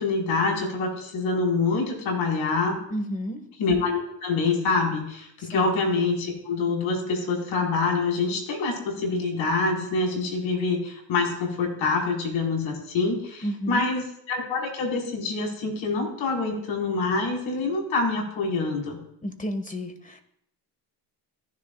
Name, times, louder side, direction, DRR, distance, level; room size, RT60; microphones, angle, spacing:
voice 1, 0.0-2.8 3.6-19.0, left 3 dB, 70° left, -1 dB, 5.3 m, -26 dB
voice 2, 2.9-3.4 5.4-5.7 13.4-13.9 19.2-20.2, equal, 15° left, 7 dB, 2.0 m, -31 dB
16.5 x 11.0 x 2.5 m, 0.72 s
supercardioid pair, 70°, 49 cm